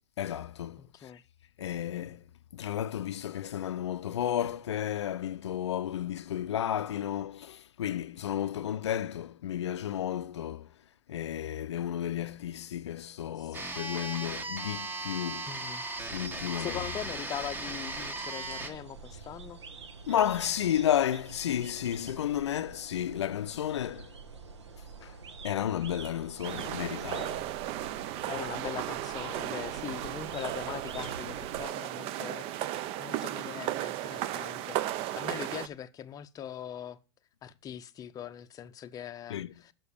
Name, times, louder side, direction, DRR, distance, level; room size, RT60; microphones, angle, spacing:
voice 1, 0.2-1.1 1.6-2.2 2.5-10.7 11.1-15.5 16.1-16.8 20.1-24.1 25.0-25.1 25.4-27.5 39.3-39.5, left 10 dB, 80° left, 0.5 m, -32 dB
voice 2, 0.8-1.2 13.4-13.6 15.5-15.8 16.6-19.6 28.3-34.8 35.2-37.0 37.4-39.7, left 9 dB, 25° left, 0.6 m, -41 dB
sound 1, 13.5-18.7, right 2 dB, 15° right, 1.2 m, -37 dB
sound 2, 16.0-31.6, right 4 dB, 90° right, 1.2 m, -47 dB
sound 3, 26.4-35.7, right 13 dB, 40° right, 0.6 m, -35 dB
6.7 x 6.1 x 6.8 m
hypercardioid pair, 110°, 14 cm